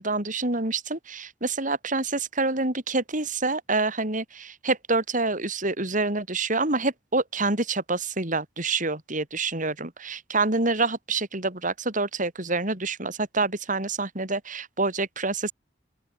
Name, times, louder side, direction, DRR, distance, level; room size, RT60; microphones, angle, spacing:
voice 1, 0.0-15.5, right 3 dB, 45° right, 5.1 m, -27 dB
open air
head